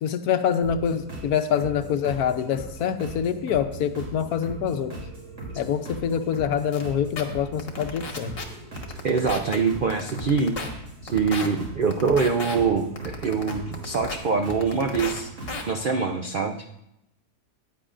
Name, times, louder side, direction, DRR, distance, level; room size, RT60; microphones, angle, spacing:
voice 1, 0.0-5.0 5.5-8.4, left 8 dB, 75° left, 9 dB, 1.2 m, -25 dB
sound 1, 0.6-15.8, right 2 dB, 50° right, 3.2 m, -39 dB
sound 2, 6.7-6.8 7.2-7.3 7.6-8.4 8.8-9.6 9.9-10.7 11.1-11.5 11.9-12.6 13.0-14.2 14.5-15.2 15.5-15.6, left 4 dB, 40° left, 1.4 m, -33 dB
voice 2, 9.0-10.5 11.0-15.3 15.7-16.5, right 5 dB, 70° right, 5 dB, 0.5 m, -24 dB
15.0 x 9.6 x 2.5 m, 0.83 s
omnidirectional pair, 1.7 m